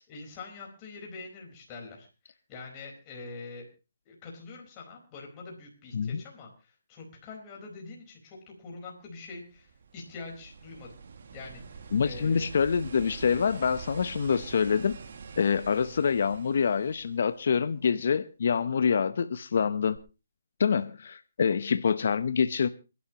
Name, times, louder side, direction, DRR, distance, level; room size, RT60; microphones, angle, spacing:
voice 1, 0.1-3.7 4.1-10.9 11.3-12.5 20.7-20.8, left 3 dB, 25° left, -1 dB, 4.6 m, -45 dB
sound 1, 9.3-17.8 20.0-20.1, right 6 dB, 55° right, 2.1 m, -46 dB
voice 2, 11.9-15.0 15.4-20.0 20.6-22.7, left 6 dB, 55° left, 12 dB, 0.9 m, -26 dB
27.0 x 11.5 x 3.0 m, 0.31 s
hypercardioid pair, 160°, 0 cm